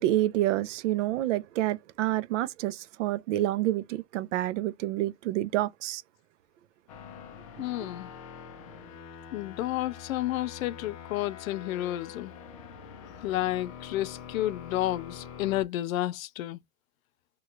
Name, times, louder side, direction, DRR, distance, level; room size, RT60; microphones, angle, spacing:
voice 1, 0.0-6.0, right 15 dB, 60° right, 0.6 m, -28 dB
sound 1, 6.9-15.6, left 7 dB, 25° left, 0.4 m, -45 dB
voice 2, 7.6-8.1 9.3-12.3 13.2-16.6, left 14 dB, 75° left, 0.6 m, -31 dB
3.1 x 2.9 x 2.4 m
supercardioid pair, 175°, 41 cm